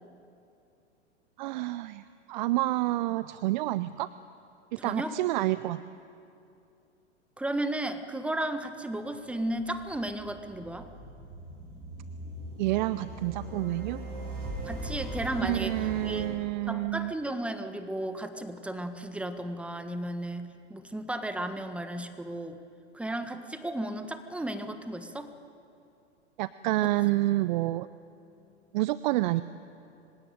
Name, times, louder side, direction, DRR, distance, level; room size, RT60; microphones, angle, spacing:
voice 1, 1.4-4.1 4.8-5.8 12.6-14.0 15.4-17.1 26.4-27.9 28.7-29.4, right 17 dB, 45° right, 16 dB, 0.6 m, -28 dB
voice 2, 4.8-5.2 7.4-10.9 14.6-15.7 16.0-16.2 16.7-22.6 22.9-25.3, right 1 dB, 5° right, 9 dB, 1.4 m, -34 dB
sound 1, 9.0-16.3, right 2 dB, 25° right, 6.9 m, -40 dB
26.0 x 16.5 x 9.2 m, 2.6 s
figure-of-eight pair, 95°, 34 cm